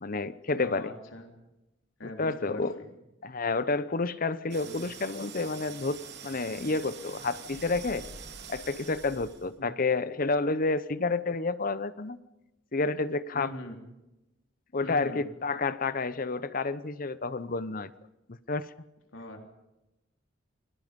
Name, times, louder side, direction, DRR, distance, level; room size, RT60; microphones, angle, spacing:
voice 1, 0.0-0.9 2.2-2.8 3.2-8.0 8.5-12.2 12.7-13.5 14.7-17.9 18.3-18.6, left 3 dB, 45° left, 15 dB, 0.9 m, -30 dB
voice 2, 0.6-1.3 2.0-2.9 4.6-4.8 9.6-9.7 13.3-13.8 14.8-15.3 19.1-19.4, left 1 dB, 85° left, 3 dB, 3.7 m, -42 dB
sound 1, 4.5-9.6, right 6 dB, 60° right, 3.5 m, -45 dB
29.0 x 22.5 x 5.3 m, 0.98 s
head